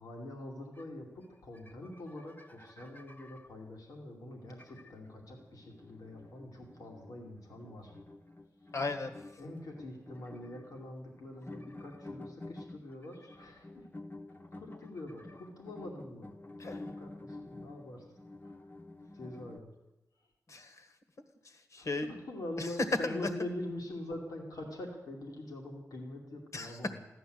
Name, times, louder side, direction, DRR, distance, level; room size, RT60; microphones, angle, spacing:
voice 1, 0.0-8.0 9.4-13.9 14.5-16.3 16.6-18.1 18.4-18.6 19.1-19.7 21.8-27.0, left 1 dB, 90° left, 0 dB, 2.6 m, -44 dB
sound 1, 0.7-0.9 1.2-1.3 1.5-3.5 4.5-19.6, left 2 dB, 30° left, 1.0 m, -50 dB
voice 2, 8.7-9.1 16.6-16.8 20.5-20.9 21.4-22.1 22.6-22.7 23.0-23.3 26.5-26.8, left 3 dB, 55° left, 8 dB, 1.6 m, -36 dB
15.0 x 11.5 x 7.9 m, 1.0 s
cardioid pair, 70°, 6 cm